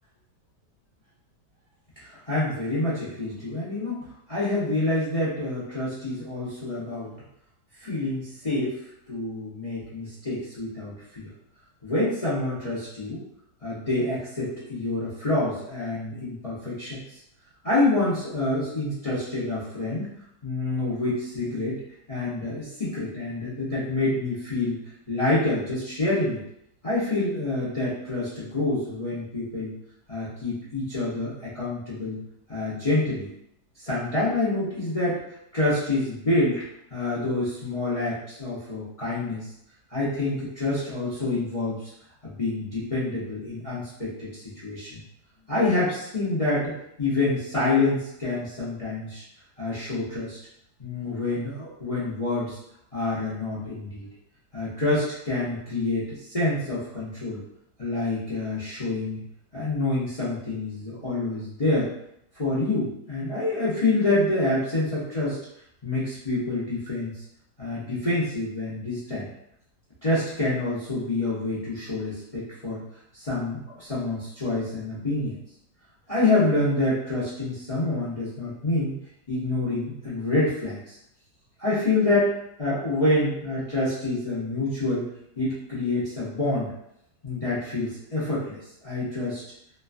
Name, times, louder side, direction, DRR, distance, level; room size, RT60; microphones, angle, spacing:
voice 1, 2.1-7.1 7.8-8.8 9.1-11.3 11.8-13.2 13.6-17.2 17.6-20.1 20.4-21.8 22.1-24.8 25.1-26.4 26.8-29.7 30.1-32.2 32.5-33.3 33.8-35.2 35.5-36.6 36.9-39.5 39.9-41.9 42.2-45.0 45.5-49.2 49.6-50.4 50.8-52.6 52.9-54.0 54.5-57.4 57.8-59.2 59.5-61.9 62.3-65.4 65.8-67.2 67.6-69.2 70.0-72.8 73.1-75.4 76.1-78.9 79.3-81.0 81.6-82.3 82.6-85.1 85.4-86.7 87.2-89.4, left 2 dB, 65° left, -10 dB, 0.3 m, -27 dB
3.0 x 2.2 x 2.4 m, 0.77 s
omnidirectional pair, 1.7 m